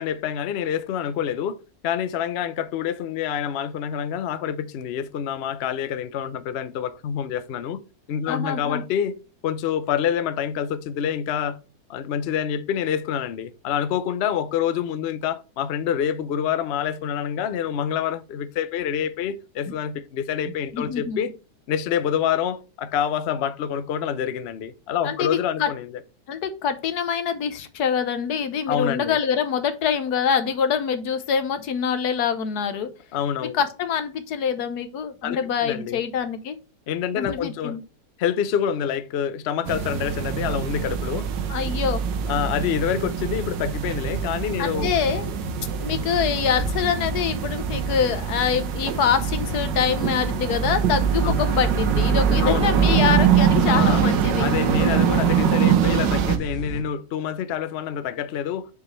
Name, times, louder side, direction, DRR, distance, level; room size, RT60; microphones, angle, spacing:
voice 1, 0.0-7.8 8.1-9.2 9.4-11.6 11.9-21.3 21.7-26.0 28.7-29.2 33.1-33.6 35.2-36.0 36.9-37.8 38.2-41.3 42.3-44.9 51.2-51.4 52.4-52.7 53.7-54.0 54.4-58.7, left 9 dB, 90° left, 0.5 m, -27 dB
voice 2, 8.3-8.8 20.7-21.2 25.0-25.7 26.3-32.9 33.4-36.6 37.1-37.8 41.5-42.0 44.6-45.3 45.8-54.5, left 7 dB, 65° left, 1.4 m, -25 dB
sound 1, 39.6-56.4, right 7 dB, 85° right, 1.5 m, -23 dB
sound 2, 50.9-56.8, right 3 dB, 40° left, 2.5 m, -32 dB
7.0 x 4.9 x 3.2 m
omnidirectional pair, 1.9 m